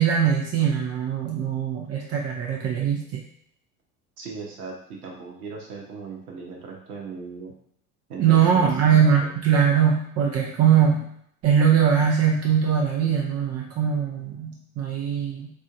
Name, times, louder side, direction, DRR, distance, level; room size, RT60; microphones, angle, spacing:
voice 1, 0.0-3.2 8.2-11.0 11.4-15.5, right 8 dB, 35° right, -1 dB, 0.7 m, -21 dB
voice 2, 4.2-7.5 8.1-9.3, right 4 dB, 70° right, -1 dB, 0.9 m, -38 dB
4.3 x 2.5 x 2.5 m, 0.68 s
figure-of-eight pair, 70°, 46 cm